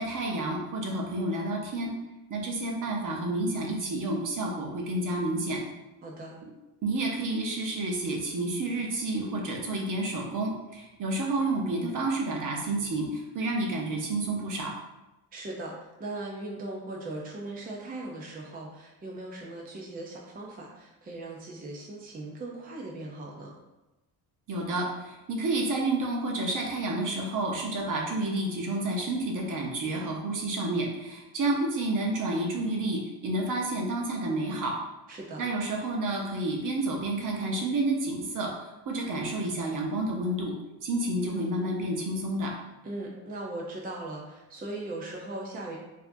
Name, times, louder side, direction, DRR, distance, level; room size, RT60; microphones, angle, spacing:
voice 1, 0.0-1.9 2.3-5.6 6.8-14.7 24.5-34.8 35.4-40.5 40.8-42.5, right 2 dB, 50° right, 0 dB, 0.9 m, -30 dB
voice 2, 6.0-6.4 15.3-23.5 35.1-35.4 42.8-45.8, right 2 dB, 20° right, -2 dB, 0.6 m, -39 dB
4.8 x 2.7 x 2.6 m, 1.0 s
cardioid pair, 105°, 42 cm